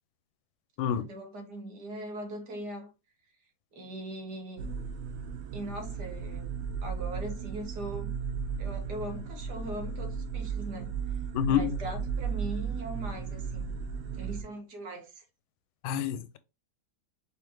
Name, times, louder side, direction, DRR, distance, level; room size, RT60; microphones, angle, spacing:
voice 1, 0.9-2.9 3.7-4.7 5.5-6.5 6.8-8.1 8.6-10.9 11.5-13.7 14.1-15.2, right 1 dB, 55° right, 1.8 m, -40 dB
sound 1, 4.6-14.4, right 6 dB, 90° right, 1.7 m, -35 dB
voice 2, 11.3-11.7 15.8-16.4, left 9 dB, 85° left, 1.5 m, -28 dB
5.0 x 3.5 x 3.0 m
omnidirectional pair, 2.2 m